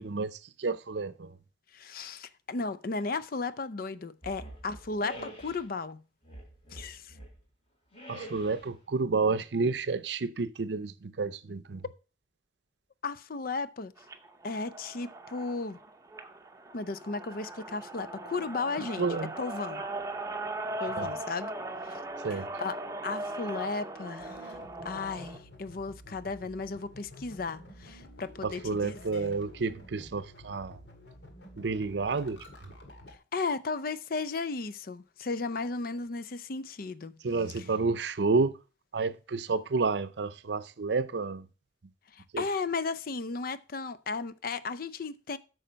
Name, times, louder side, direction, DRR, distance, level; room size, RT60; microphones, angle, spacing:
voice 1, 0.0-1.3 8.1-11.8 19.0-19.3 21.0-21.1 22.2-22.5 28.4-30.8 31.6-32.4 37.2-38.6 38.9-41.4 42.3-42.4, right 4 dB, 70° right, 0.6 m, -30 dB
voice 2, 1.7-6.0 6.7-7.2 13.0-13.9 14.4-15.8 16.7-19.1 19.4-19.8 20.8-21.5 21.8-22.0 22.3-24.6 24.8-29.4 33.3-37.2 37.6-37.7 42.1-45.4, left 4 dB, 55° left, 0.5 m, -35 dB
sound 1, 4.2-5.7 6.2-7.4 7.9-8.7, right 1 dB, 35° left, 4.1 m, -46 dB
sound 2, 14.0-25.4, right 2 dB, 20° right, 0.7 m, -39 dB
sound 3, 24.2-33.2, equal, 75° left, 1.9 m, -50 dB
8.7 x 6.4 x 5.1 m
head